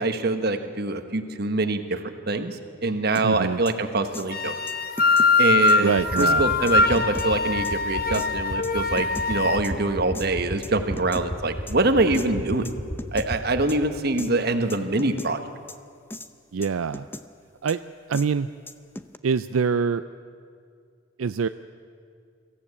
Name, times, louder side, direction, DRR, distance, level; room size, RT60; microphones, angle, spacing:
voice 1, 0.0-2.0 2.3-2.6 2.8-4.5 5.4-12.7 13.1-15.4, right 2 dB, 50° right, 8 dB, 1.3 m, -24 dB
sound 1, 3.2-3.3 3.7-3.8 4.1-4.3 4.7-5.3 5.7-5.8 6.2-6.3 6.7-7.3 7.6-7.7 8.1-8.3 8.6-9.3 9.6-9.7 10.1-10.3 10.6-11.3 11.7-11.8 12.1-12.3 12.7-12.8 13.0-13.3 13.7-13.8 14.2-14.3 14.7-15.3 15.7-15.8 16.1-16.3 16.6-17.3 17.7-17.8 18.1-18.3 18.7-19.2, left 1 dB, 10° left, 0.6 m, -37 dB
voice 2, 3.2-3.6 5.8-6.5 16.5-17.1 17.6-17.8 18.1-18.5 19.2-20.0 21.2-21.5, right 5 dB, 80° right, 11 dB, 0.4 m, -24 dB
sound 2, 4.3-9.6, left 3 dB, 45° left, 1.0 m, -22 dB
sound 3, 6.0-13.6, equal, 25° left, 2.8 m, -31 dB
23.0 x 15.0 x 8.6 m, 2.2 s
head